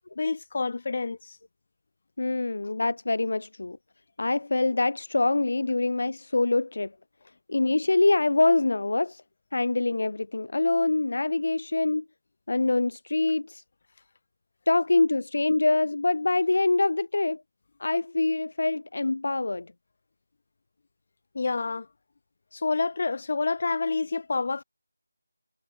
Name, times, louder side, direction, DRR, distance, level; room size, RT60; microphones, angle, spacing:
voice 1, 0.2-1.3 21.3-21.9 22.5-24.6, left 3 dB, 45° left, 3.7 m, -28 dB
voice 2, 2.2-3.8 4.2-6.9 7.5-9.2 9.5-12.0 12.5-13.6 14.7-17.4 17.8-19.7, left 2 dB, 60° left, 2.3 m, -25 dB
figure-of-eight pair, 170°, 0 cm